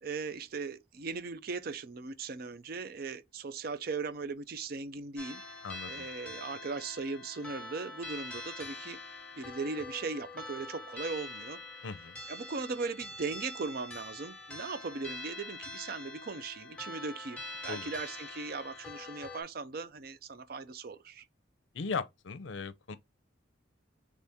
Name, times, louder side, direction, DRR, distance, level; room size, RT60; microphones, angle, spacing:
voice 1, 0.0-5.4 5.9-9.0 9.4-11.6 12.3-21.3, right 4 dB, 50° right, 0.4 m, -38 dB
sound 1, 5.2-19.4, left 2 dB, 5° left, 1.2 m, -44 dB
voice 2, 5.6-6.1 11.8-12.2 17.7-17.9 21.7-23.0, left 4 dB, 70° left, 0.5 m, -38 dB
4.1 x 3.6 x 3.5 m
head